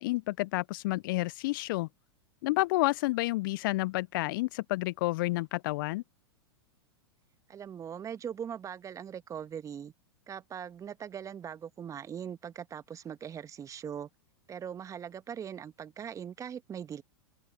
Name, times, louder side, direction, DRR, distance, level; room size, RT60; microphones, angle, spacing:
voice 1, 0.0-1.9 2.4-6.0, left 20 dB, 50° left, 0.4 m, -30 dB
voice 2, 7.5-9.9 10.3-14.1 14.5-17.0, right 8 dB, 25° right, 1.4 m, -41 dB
open air
hypercardioid pair, 100°, 14 cm